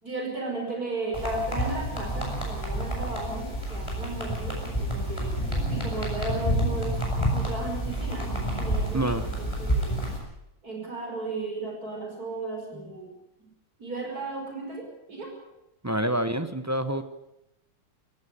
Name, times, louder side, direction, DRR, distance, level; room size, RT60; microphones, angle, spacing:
voice 1, 0.0-5.3 5.7-7.0 7.3-9.9 10.6-13.1 13.8-15.3, right 2 dB, 50° right, 2 dB, 6.1 m, -35 dB
sound 1, 1.1-10.2, equal, 15° left, 6.1 m, -29 dB
voice 2, 8.9-9.3 12.7-12.9 15.8-17.0, right 1 dB, 25° right, 10 dB, 0.3 m, -27 dB
17.5 x 16.5 x 9.8 m, 0.87 s
omnidirectional pair, 2.1 m